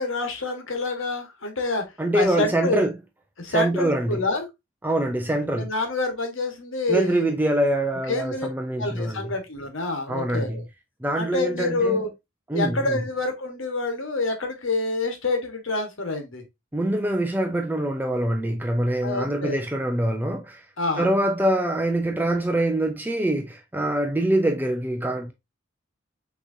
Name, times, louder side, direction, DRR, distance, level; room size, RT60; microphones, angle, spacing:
voice 1, 0.0-1.8 2.1-2.8 3.4-4.5 5.5-7.3 8.1-8.5 8.8-10.6 11.2-12.1 12.5-16.4 19.0-19.7 20.8-21.1, left 2 dB, 75° left, 1.3 m, -27 dB
voice 2, 2.0-2.9 3.5-4.2 4.8-5.7 6.9-9.3 10.1-10.6 11.0-12.0 12.5-13.0 16.7-20.6 21.0-25.3, right 1 dB, 10° right, 0.5 m, -24 dB
6.2 x 3.0 x 2.6 m
head